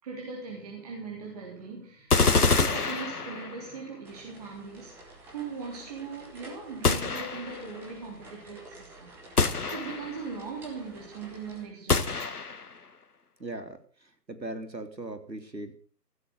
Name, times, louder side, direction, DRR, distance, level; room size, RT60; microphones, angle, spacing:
voice 1, 0.0-5.0 5.3-9.4 9.7-12.3, right 5 dB, 25° right, -2 dB, 3.7 m, -40 dB
sound 1, 2.1-3.7 6.8-7.7 9.4-10.3 11.9-12.8, left 4 dB, 60° left, 1.8 m, -26 dB
sound 2, 4.0-11.6, right 1 dB, 5° right, 1.7 m, -50 dB
voice 2, 13.4-15.8, right 2 dB, 80° right, 9 dB, 3.6 m, -39 dB
15.5 x 13.0 x 6.5 m, 0.42 s
figure-of-eight pair, 155°, 50 cm